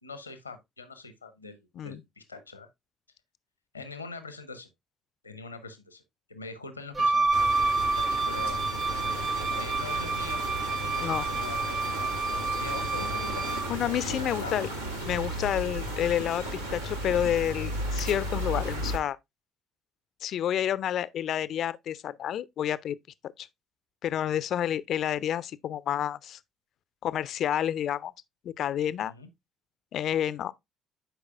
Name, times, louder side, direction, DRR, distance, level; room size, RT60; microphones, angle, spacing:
voice 1, 0.0-2.7 3.7-4.7 5.2-6.0 6.3-8.6 9.6-13.6 14.1-14.6 29.1-29.3, left 4 dB, 90° left, 0.7 m, -43 dB
Wind instrument woodwind instrument, 6.9-13.7, right 3 dB, 30° right, 0.8 m, -28 dB
sound 1, 7.3-19.0, equal, 85° right, 1.0 m, -34 dB
voice 2, 13.7-14.7 15.1-19.2 20.2-23.0 23.4-23.5 24.0-26.4 27.0-28.1 28.4-29.1 29.9-30.5, left 10 dB, 55° left, 0.4 m, -29 dB
10.0 x 4.7 x 2.4 m
figure-of-eight pair, 50°, 0 cm